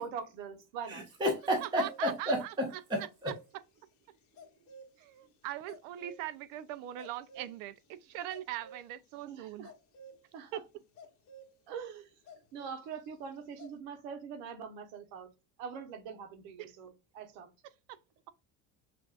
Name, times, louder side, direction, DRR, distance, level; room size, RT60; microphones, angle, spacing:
voice 1, 0.0-1.0 9.2-9.7 10.3-10.6 11.7-12.1 12.5-15.3 15.6-17.5, right 6 dB, 85° right, 1.0 m, -43 dB
sound 1, 0.8-2.3 2.9-3.5 4.4-5.0 5.7-6.5 6.8-7.6 8.1-8.9 9.6-10.2 11.0-11.5 12.3-13.1 13.4-13.7, right 1 dB, 40° left, 0.9 m, -52 dB
voice 2, 0.9-3.3, equal, 10° right, 0.9 m, -32 dB
voice 3, 1.6-2.5 5.0-9.7 10.5-10.6 16.6-16.7 17.9-18.0, right 13 dB, 65° right, 0.5 m, -41 dB
5.9 x 2.5 x 2.4 m
cardioid pair, 165°, 37 cm